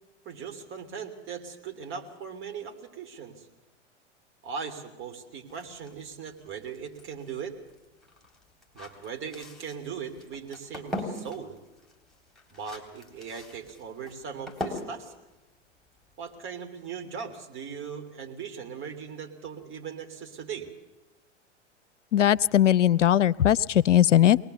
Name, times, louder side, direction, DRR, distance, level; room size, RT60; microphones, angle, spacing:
voice 1, 0.2-3.4 4.4-7.6 8.7-11.6 12.5-15.1 16.2-20.7, right 6 dB, 35° right, 5 dB, 3.2 m, -39 dB
sound 1, 5.5-16.3, left 1 dB, ahead, 3.7 m, -42 dB
voice 2, 22.1-24.4, left 11 dB, 80° left, 18 dB, 0.6 m, -19 dB
23.0 x 19.5 x 6.9 m, 1.1 s
figure-of-eight pair, 95°, 36 cm